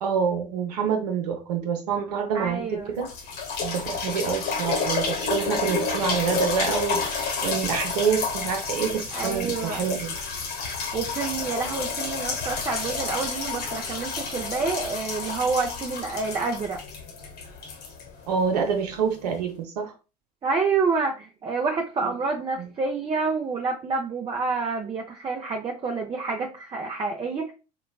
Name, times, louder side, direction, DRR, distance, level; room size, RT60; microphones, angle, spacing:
voice 1, 0.0-3.1 3.6-10.2 18.3-19.9 22.0-22.1 22.6-22.7, right 6 dB, 75° right, 0.7 m, -27 dB
voice 2, 2.3-2.9 9.1-9.8 10.6-16.8 20.4-27.5, right 4 dB, 25° right, 0.6 m, -28 dB
sound 1, 2.5-2.6 3.0-18.7 19.3-19.4, left 5 dB, 55° left, 1.0 m, -30 dB
4.0 x 2.2 x 2.2 m
hypercardioid pair, 65°, 21 cm